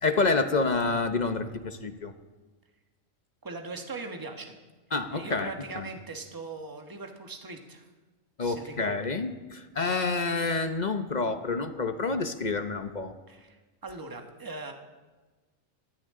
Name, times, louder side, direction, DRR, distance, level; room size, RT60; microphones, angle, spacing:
voice 1, 0.0-2.1 4.9-5.9 8.4-13.1, left 3 dB, 40° left, 8 dB, 0.8 m, -28 dB
voice 2, 3.4-4.6 5.1-7.9 8.4-9.0 13.3-14.7, right 3 dB, 15° right, 4 dB, 1.3 m, -40 dB
23.5 x 16.0 x 3.7 m, 1.3 s
omnidirectional pair, 1.4 m